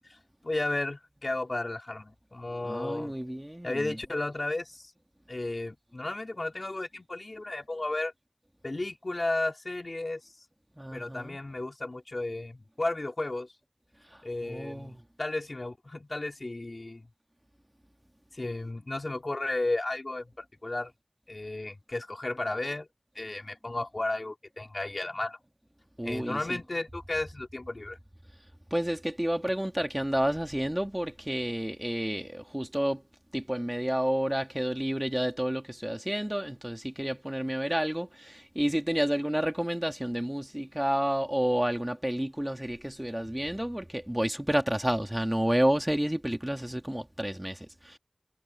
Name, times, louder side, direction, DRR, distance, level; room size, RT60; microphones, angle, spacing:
voice 1, 0.4-3.2 3.6-4.9 5.3-8.1 8.6-10.2 10.9-13.5 14.2-17.1 18.3-20.3 20.6-20.9 21.3-22.9 23.1-25.4 26.0-28.0, left 2 dB, 60° left, 4.3 m, -33 dB
voice 2, 2.6-4.0 10.8-11.4 14.1-15.0 26.0-26.6 28.7-33.0 33.3-48.0, right 1 dB, 15° right, 2.6 m, -30 dB
wide cardioid pair, 50°, 0 cm